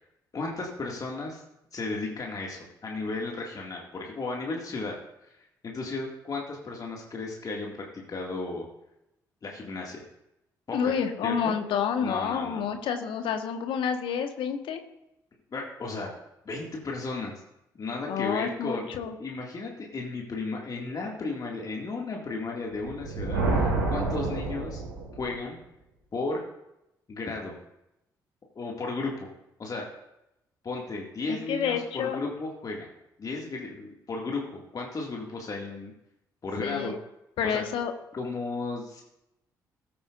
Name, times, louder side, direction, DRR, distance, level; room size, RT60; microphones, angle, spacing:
voice 1, 0.3-1.4 1.7-4.9 5.2-5.3 5.6-8.7 9.4-10.0 10.7-11.0 11.2-11.6 12.0-12.8 15.5-16.1 16.5-17.3 17.8-18.9 19.2-24.8 25.1-25.6 26.1-26.4 27.1-27.6 28.6-29.3 29.6-29.9 30.6-32.9 33.2-35.9 36.4-36.9 37.4-37.6 38.1-39.0, left 3 dB, 40° left, -1 dB, 2.1 m, -34 dB
voice 2, 10.7-14.8 18.1-19.1 31.3-32.2 36.6-37.0 37.4-37.9, left 7 dB, 60° left, 6 dB, 1.4 m, -29 dB
Thunder, 22.7-25.4, right 3 dB, 80° right, 2.5 m, -28 dB
20.0 x 8.8 x 2.6 m, 0.86 s
figure-of-eight pair, 45°, 10 cm